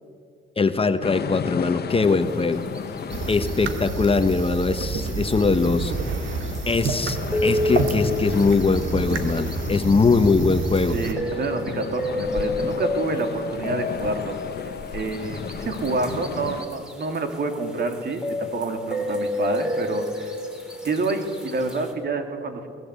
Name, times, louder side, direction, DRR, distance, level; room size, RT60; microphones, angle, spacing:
voice 1, 0.6-2.6 3.3-5.9 6.7-11.0, left 4 dB, 30° left, 10 dB, 1.2 m, -21 dB
sound 1, 1.0-16.7, left 7 dB, 55° left, 1.2 m, -34 dB
sound 2, 2.1-21.9, left 2 dB, 5° right, 3.3 m, -32 dB
sound 3, 3.1-11.1, right 4 dB, 75° right, 2.1 m, -29 dB
voice 2, 10.9-14.4 14.9-20.3 20.8-22.7, right 3 dB, 55° right, 6 dB, 3.0 m, -28 dB
23.0 x 18.5 x 8.4 m, 2.2 s
cardioid pair, 90°, 20 cm